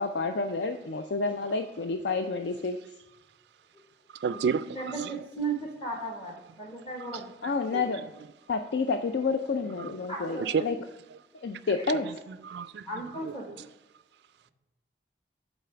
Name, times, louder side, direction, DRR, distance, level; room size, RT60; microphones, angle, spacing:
voice 1, 0.0-2.8 7.4-8.1 8.5-10.8 11.4-12.1, left 4 dB, 70° left, 7 dB, 0.4 m, -29 dB
voice 2, 4.2-5.1 7.1-7.2 7.7-7.9 9.8-9.9 10.4-10.6 12.0-12.1 12.4-12.9, right 6 dB, 65° right, 14 dB, 0.3 m, -30 dB
voice 3, 4.7-7.3 10.1-10.5 11.7-11.9 12.9-13.6, right 3 dB, 30° left, 0 dB, 1.0 m, -36 dB
8.2 x 4.1 x 5.7 m, 1.0 s
head